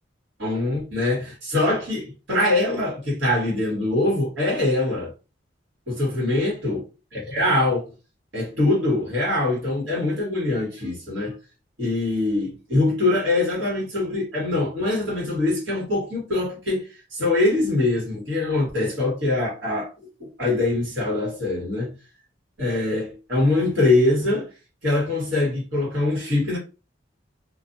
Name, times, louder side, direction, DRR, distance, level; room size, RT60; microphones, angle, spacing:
voice 1, 0.4-5.1 5.9-6.8 7.1-7.9 8.3-11.4 11.8-19.9 20.2-21.9 22.6-24.5 24.8-26.6, left 2 dB, 85° right, 1.6 m, -23 dB
2.6 x 2.5 x 2.6 m
head